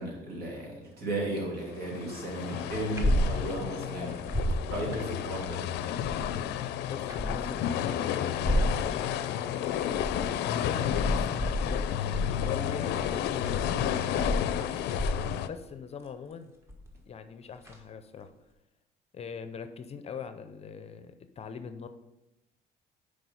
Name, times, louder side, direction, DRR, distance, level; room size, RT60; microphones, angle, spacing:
voice 1, 0.0-4.3 4.7-5.6, right 1 dB, 60° right, -2 dB, 2.7 m, -35 dB
sound 1, 1.6-15.5, left 10 dB, 80° left, 0.5 m, -32 dB
sound 2, 2.9-3.3 3.6-3.7 4.1-4.6 5.8-6.4 6.9-7.6 8.3-8.8 9.6-10.2 10.6-15.4 16.7-17.0 17.6-17.8, equal, 15° right, 1.4 m, -31 dB
voice 2, 6.8-9.7 10.6-13.5 13.8-14.9 15.5-16.5 17.1-18.3 19.1-21.9, left 6 dB, 35° left, 9 dB, 0.6 m, -42 dB
6.0 x 4.9 x 5.4 m, 0.95 s
cardioid pair, 110°, 17 cm